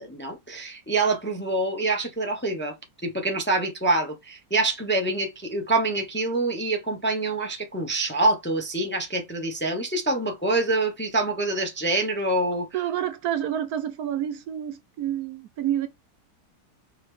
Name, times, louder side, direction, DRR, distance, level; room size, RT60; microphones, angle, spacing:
voice 1, 0.0-2.7 3.0-12.7, right 2 dB, 10° left, 0.7 m, -26 dB
voice 2, 12.7-15.9, right 10 dB, 70° right, 1.0 m, -28 dB
4.8 x 3.4 x 3.1 m
omnidirectional pair, 1.8 m